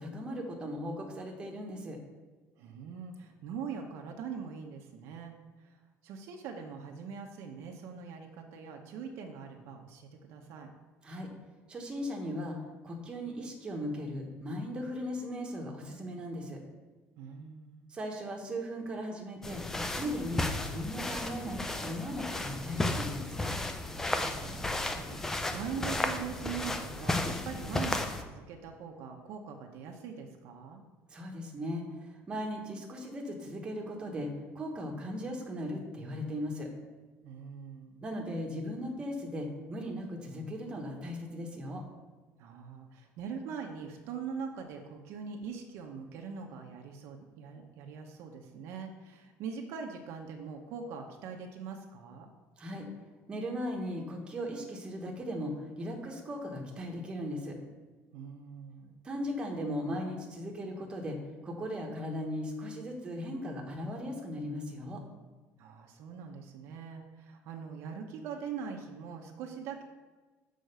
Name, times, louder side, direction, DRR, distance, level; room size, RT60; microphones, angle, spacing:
voice 1, 0.0-2.0 11.0-11.3 11.7-12.6 12.8-16.6 17.9-19.6 20.0-23.6 31.1-36.7 38.0-41.8 52.6-52.9 53.3-57.6 59.0-61.2 61.4-65.0, equal, 20° right, 0 dB, 1.1 m, -38 dB
voice 2, 2.6-5.8 6.0-10.7 17.2-18.0 24.1-30.8 37.2-38.0 42.4-52.3 58.1-59.0 65.6-69.8, right 6 dB, 65° right, 3 dB, 0.9 m, -42 dB
sound 1, 19.4-28.2, left 2 dB, 10° left, 0.4 m, -34 dB
6.4 x 4.6 x 6.7 m, 1.3 s
cardioid pair, 170°, 5 cm